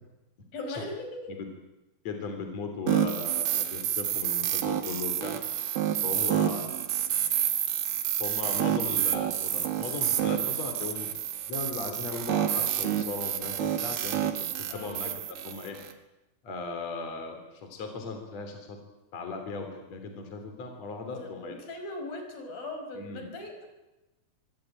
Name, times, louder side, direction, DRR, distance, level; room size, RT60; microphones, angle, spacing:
voice 1, 0.5-1.2 6.2-6.3 14.7-15.1 21.0-23.7, left 2 dB, 65° left, 4 dB, 7.1 m, -39 dB
voice 2, 2.0-5.4 6.0-6.8 8.2-11.2 11.5-14.3 14.7-15.8 16.4-18.8 19.1-21.5 22.9-23.3, left 4 dB, 45° left, 5 dB, 4.3 m, -37 dB
sound 1, 2.9-15.9, right 11 dB, 80° right, 3.7 m, -29 dB
25.5 x 24.5 x 9.1 m, 1.0 s
omnidirectional pair, 4.3 m